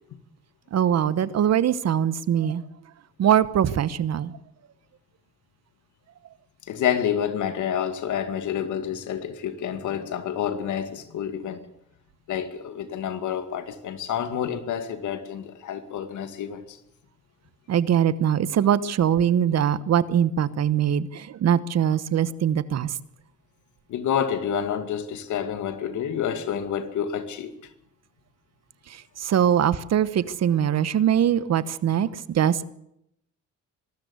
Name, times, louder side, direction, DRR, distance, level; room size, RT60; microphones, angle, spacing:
voice 1, 0.7-2.6 3.2-4.3 17.7-22.9 28.9-32.6, right 9 dB, 60° right, 1.1 m, -22 dB
voice 2, 6.7-11.7 12.3-16.8 23.9-27.5, left 8 dB, 75° left, 2.2 m, -28 dB
24.5 x 13.0 x 8.2 m
cardioid pair, 90°, 30 cm